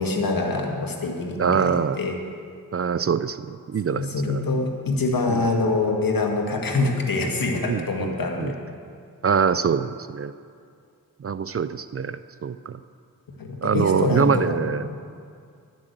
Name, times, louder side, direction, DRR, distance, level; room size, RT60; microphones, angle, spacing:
voice 1, 0.0-2.2 3.9-8.5 13.4-15.0, left 3 dB, 65° left, 2 dB, 1.7 m, -25 dB
voice 2, 1.4-2.0 2.7-4.4 5.3-5.5 7.6-8.5 9.2-10.3 11.2-12.8 13.6-14.9, right 6 dB, 40° right, 13 dB, 0.4 m, -24 dB
11.0 x 7.4 x 7.8 m, 2.2 s
cardioid pair, 50°, 37 cm